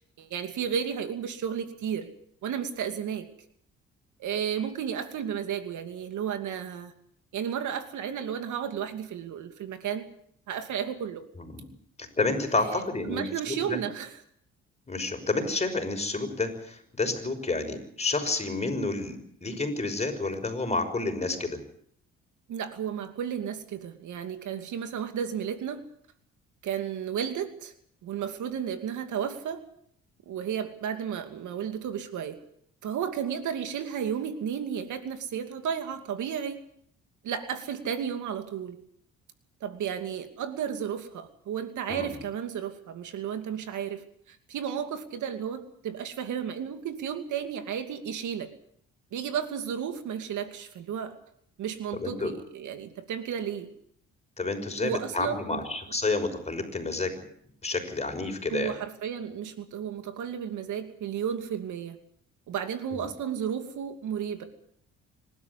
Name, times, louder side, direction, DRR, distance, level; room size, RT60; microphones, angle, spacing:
voice 1, 0.2-2.1 2.4-3.3 4.2-6.9 7.3-10.0 10.5-11.2 12.7-14.2 22.5-25.8 26.6-27.7 28.0-29.6 30.3-32.4 32.8-36.6 37.2-38.8 39.6-48.5 49.1-51.2 51.6-53.7 54.8-55.6 58.5-62.0 62.5-64.4, right 8 dB, 75° right, 7 dB, 2.7 m, -33 dB
voice 2, 11.4-11.7 12.0-13.8 14.9-21.6 41.9-42.1 52.0-52.3 54.4-57.2 57.6-58.7 62.9-63.0, left 3 dB, 20° left, 6 dB, 5.8 m, -30 dB
26.0 x 12.5 x 9.9 m, 0.66 s
cardioid pair, 90°, 30 cm